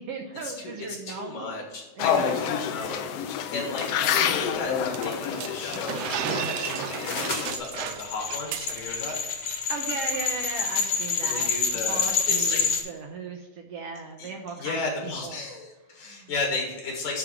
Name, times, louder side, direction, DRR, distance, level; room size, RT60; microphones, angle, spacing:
voice 1, 0.0-1.5 1.9-2.8 9.7-11.5 11.9-15.4 15.9-16.3, right 4 dB, 70° right, 3 dB, 1.5 m, -37 dB
voice 2, 0.9-9.2 11.2-12.0 12.4-12.6 14.2-14.3 14.6-17.2, left 3 dB, 75° left, 0 dB, 3.1 m, -34 dB
sound 1, 2.0-7.6, left 8 dB, 90° left, 1.4 m, -28 dB
sound 2, 4.9-9.2 9.4-9.6 9.9-10.3, right 11 dB, 85° right, 2.1 m, -33 dB
sound 3, 7.5-12.8, left 6 dB, 55° left, 1.9 m, -27 dB
10.5 x 3.6 x 7.1 m, 1.2 s
omnidirectional pair, 3.6 m